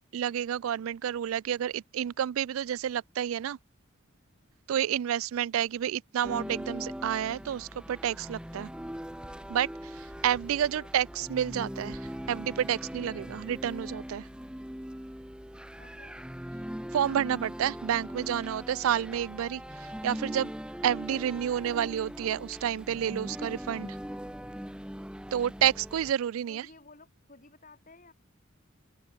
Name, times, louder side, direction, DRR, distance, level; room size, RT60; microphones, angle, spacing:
voice 1, 0.1-3.6 4.7-8.7 9.5-14.3 16.9-20.5 20.8-24.0 25.3-26.7, right 10 dB, 80° right, 0.3 m, -30 dB
sound 1, 6.2-26.1, equal, 5° right, 1.4 m, -41 dB
voice 2, 10.5-10.9 15.8-16.2 26.5-28.1, left 3 dB, 40° left, 3.7 m, -54 dB
head